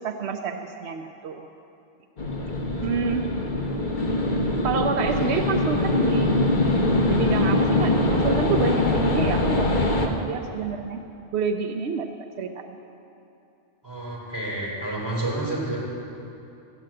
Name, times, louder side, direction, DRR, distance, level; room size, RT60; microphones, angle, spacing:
voice 1, 0.0-1.5 2.8-3.2 4.6-6.4 7.1-11.0 11.3-12.1 12.4-12.7, right 5 dB, 85° right, 5 dB, 0.9 m, -28 dB
sound 1, 2.2-10.1, left 2 dB, 50° left, 1.3 m, -23 dB
voice 2, 2.3-3.0 13.8-15.8, right 2 dB, 20° right, -6 dB, 4.4 m, -30 dB
14.0 x 9.2 x 7.6 m, 2.8 s
omnidirectional pair, 1.1 m